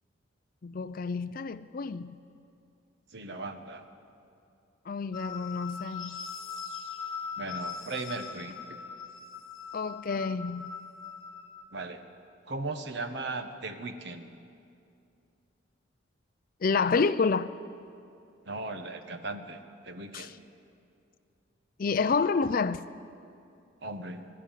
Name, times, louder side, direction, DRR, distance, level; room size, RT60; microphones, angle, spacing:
voice 1, 0.6-2.2 4.9-6.2 9.7-10.7 16.6-17.5 20.1-20.3 21.8-22.8, left 4 dB, 45° left, 0.4 m, -29 dB
voice 2, 3.1-3.8 7.4-8.8 11.7-12.0 12.5-14.4 18.4-20.4 23.8-24.3, right 2 dB, 55° right, 1.3 m, -38 dB
sound 1, 5.1-11.6, left 6 dB, 80° left, 1.4 m, -41 dB
23.5 x 12.5 x 9.1 m
head